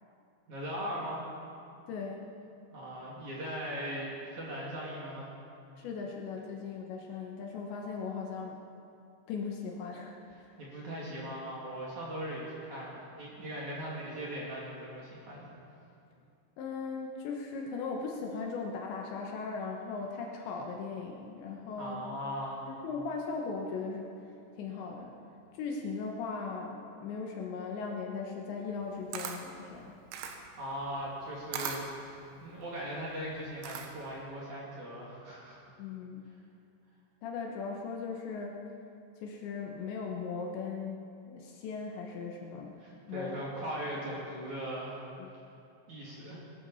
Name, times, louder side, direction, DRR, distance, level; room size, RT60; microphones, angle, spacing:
voice 1, 0.5-1.2 2.7-5.3 10.6-15.5 21.8-22.7 30.6-35.6 42.8-45.3 45.9-46.4, equal, 45° right, -5 dB, 3.2 m, -39 dB
voice 2, 1.9-2.3 5.8-8.6 9.3-10.6 16.6-22.1 22.7-25.2 25.5-29.9 35.8-36.2 37.2-38.6 39.2-42.7 43.1-43.4 45.2-45.3, left 4 dB, 70° left, 0 dB, 3.1 m, -38 dB
Camera, 28.7-34.2, right 7 dB, 75° right, 3.2 m, -41 dB
20.5 x 12.5 x 5.6 m, 2.5 s
omnidirectional pair, 5.9 m